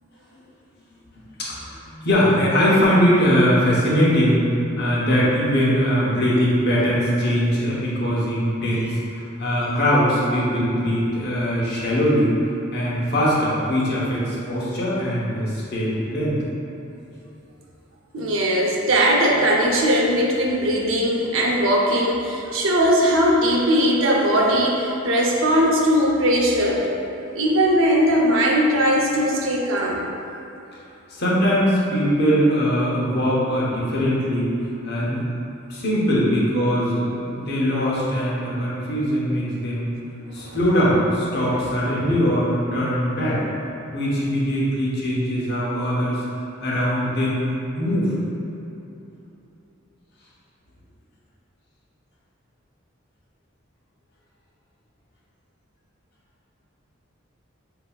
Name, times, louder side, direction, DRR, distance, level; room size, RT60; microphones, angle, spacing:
voice 1, 2.0-4.4 4.8-12.3 12.7-16.3 31.1-34.5 34.8-35.2 35.7-39.9 40.3-43.4 43.9-46.2 46.6-47.5 47.7-48.1, equal, 55° left, -7 dB, 1.1 m, -21 dB
voice 2, 18.1-26.9 27.3-30.1 40.3-40.6 41.4-41.7 42.0-42.2, equal, 70° right, -2 dB, 0.7 m, -20 dB
7.3 x 2.9 x 2.4 m, 2.9 s
head